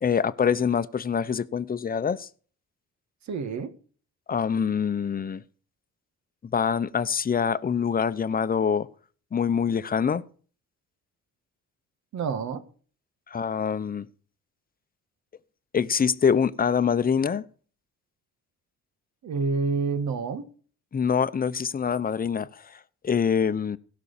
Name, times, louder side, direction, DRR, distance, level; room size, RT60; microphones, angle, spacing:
voice 1, 0.0-2.3 4.3-5.4 6.4-8.9 9.3-10.2 13.3-14.1 15.7-17.4 20.9-23.8, left 7 dB, 30° left, 0.8 m, -25 dB
voice 2, 3.3-3.7 12.1-12.6 19.2-20.5, right 4 dB, 65° right, 1.7 m, -28 dB
16.5 x 6.2 x 7.2 m
cardioid pair, 90°, 30 cm